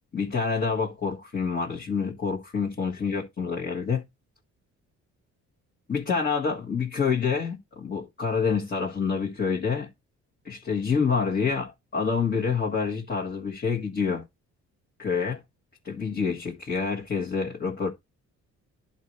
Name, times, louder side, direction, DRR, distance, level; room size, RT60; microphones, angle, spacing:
voice 1, 0.1-4.0 5.9-9.9 10.5-14.2 15.0-15.4 15.8-17.9, left 5 dB, 35° left, 1.7 m, -27 dB
11.0 x 4.3 x 3.1 m
cardioid pair, 90°, 30 cm